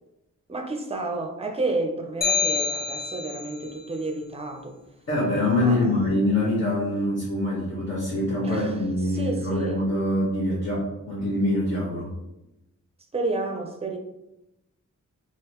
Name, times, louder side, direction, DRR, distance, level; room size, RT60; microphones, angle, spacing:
voice 1, 0.5-4.8 5.6-6.0 8.4-8.7 9.0-9.8 13.1-14.0, right 2 dB, 20° right, 3 dB, 0.5 m, -30 dB
sound 1, 2.2-3.6, left 5 dB, 30° left, 0.5 m, -26 dB
voice 2, 5.1-12.1, left 1 dB, 55° left, -10 dB, 1.3 m, -24 dB
3.8 x 2.9 x 2.9 m, 0.89 s
wide cardioid pair, 135°, 31 cm